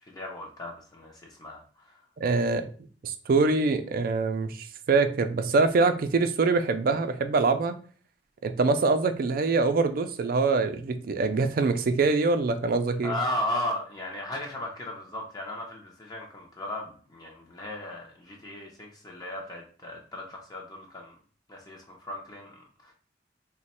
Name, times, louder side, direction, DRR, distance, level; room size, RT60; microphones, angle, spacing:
voice 1, 0.0-2.0 13.0-21.2 21.5-22.9, left 1 dB, 20° left, -1 dB, 0.5 m, -36 dB
voice 2, 2.2-2.7 3.0-7.7 8.4-13.1, right 3 dB, 55° right, 9 dB, 0.4 m, -24 dB
3.0 x 2.1 x 4.2 m, 0.41 s
head